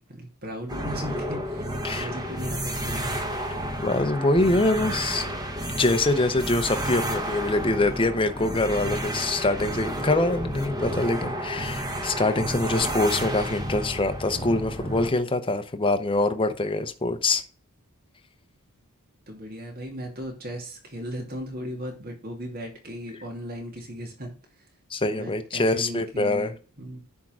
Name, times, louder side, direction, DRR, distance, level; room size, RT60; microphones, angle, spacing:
voice 1, 0.0-3.2 19.3-24.7 25.1-26.5 26.8-27.0, equal, 45° right, 2.2 m, -37 dB
sound 1, 0.7-15.1, equal, 20° right, 1.4 m, -31 dB
voice 2, 3.8-5.2 5.8-17.4 24.9-26.5, left 2 dB, 25° left, 0.7 m, -24 dB
10.5 x 3.7 x 6.1 m
head